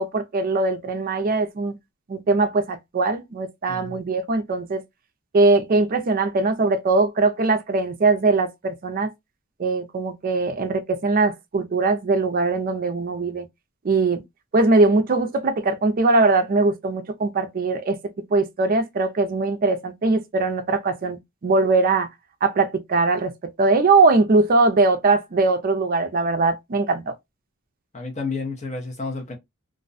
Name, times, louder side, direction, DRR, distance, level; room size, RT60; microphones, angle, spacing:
voice 1, 0.0-1.7 2.1-4.8 5.3-9.1 9.6-13.5 13.8-14.2 14.5-18.0 18.3-21.2 21.4-22.1 22.4-23.3 23.6-27.1, right 3 dB, 45° right, 0.4 m, -21 dB
voice 2, 27.9-29.4, left 3 dB, 35° left, 0.7 m, -30 dB
2.4 x 2.1 x 2.5 m
head